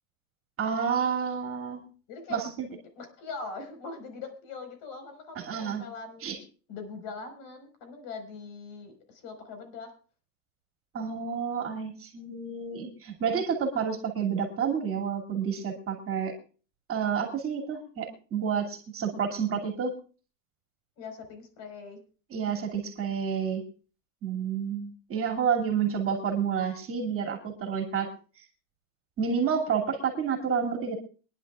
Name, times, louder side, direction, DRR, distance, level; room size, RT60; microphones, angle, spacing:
voice 1, 0.6-1.8 2.3-2.7 5.4-5.8 6.2-6.4 10.9-16.3 16.9-19.9 22.3-23.6 24.2-28.1 29.2-31.0, right 7 dB, 25° right, 3 dB, 2.6 m, -29 dB
voice 2, 2.1-2.4 3.0-6.3 6.7-9.9 21.0-22.0, left 4 dB, 50° left, 6 dB, 5.0 m, -41 dB
24.0 x 11.0 x 2.4 m, 0.37 s
supercardioid pair, 140°, 49 cm